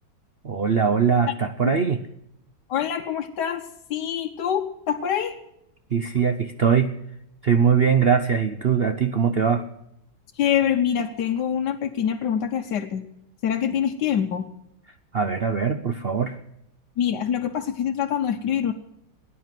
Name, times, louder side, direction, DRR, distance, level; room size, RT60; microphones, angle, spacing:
voice 1, 0.4-2.0 5.9-6.9 7.4-9.6 15.1-16.4, right 6 dB, 65° right, 9 dB, 0.6 m, -21 dB
voice 2, 2.7-5.4 10.3-13.0 13.4-14.5 17.0-18.7, left 9 dB, 70° left, 3 dB, 1.4 m, -25 dB
17.0 x 10.0 x 7.5 m, 0.80 s
omnidirectional pair, 2.0 m